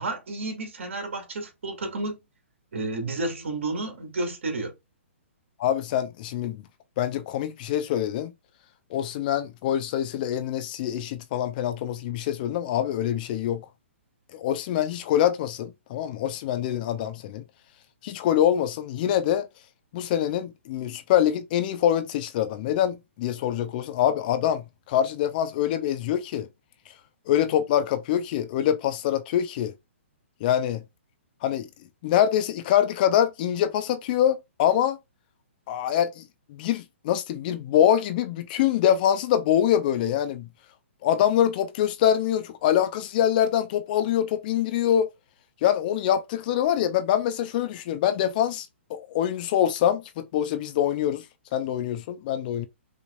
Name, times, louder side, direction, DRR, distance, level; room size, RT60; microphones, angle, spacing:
voice 1, 0.0-2.2 2.7-4.7, right 2 dB, 70° right, 2.6 m, -31 dB
voice 2, 5.6-6.6 7.0-8.3 8.9-13.6 14.3-17.4 18.0-19.5 19.9-26.5 27.3-29.7 30.4-30.8 31.4-31.7 32.0-35.0 35.7-36.2 36.5-40.5 41.0-45.1 45.6-51.2 51.5-52.7, left 10 dB, 45° left, 0.7 m, -24 dB
5.4 x 3.3 x 2.4 m
hypercardioid pair, 135°, 7 cm